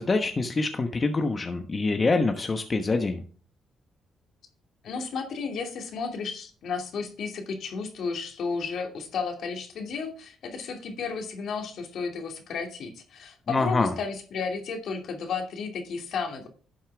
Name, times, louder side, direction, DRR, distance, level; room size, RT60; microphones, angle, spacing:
voice 1, 0.0-3.2 13.5-13.9, left 3 dB, 30° left, 6 dB, 1.1 m, -25 dB
voice 2, 4.8-16.5, left 5 dB, 65° left, 4 dB, 2.6 m, -33 dB
11.5 x 7.4 x 3.5 m, 0.40 s
cardioid pair, 90°, 0 cm